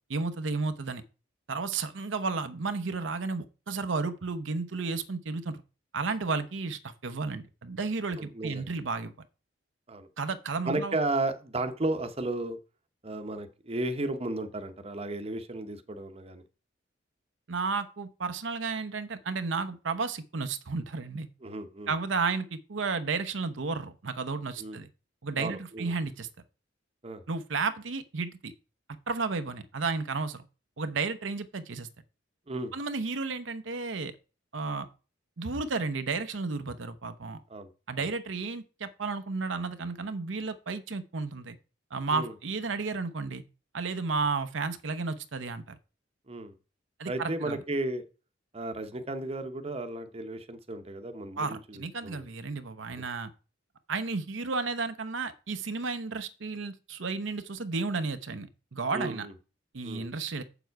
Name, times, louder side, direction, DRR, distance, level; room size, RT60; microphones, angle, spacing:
voice 1, 0.1-1.0 1.5-5.6 5.9-9.1 10.2-10.9 17.5-21.3 21.9-24.9 25.2-26.3 27.3-28.5 29.1-30.4 30.8-31.9 32.7-34.1 34.5-34.9 35.4-37.4 37.9-41.6 41.9-43.4 43.7-45.8 47.0-47.6 51.4-53.3 53.9-59.3 59.7-60.4, right 4 dB, 70° right, 10 dB, 0.8 m, -32 dB
voice 2, 8.2-8.6 9.9-10.1 10.6-12.6 13.0-16.4 21.4-21.9 24.6-24.8 25.4-25.9 27.0-27.2 32.5-32.7 37.5-37.7 38.0-38.1 42.1-42.3 46.3-46.5 47.1-48.0 48.5-52.2 58.9-59.3 59.8-60.0, right 2 dB, 30° right, 9 dB, 0.9 m, -34 dB
7.5 x 7.0 x 4.6 m, 0.33 s
head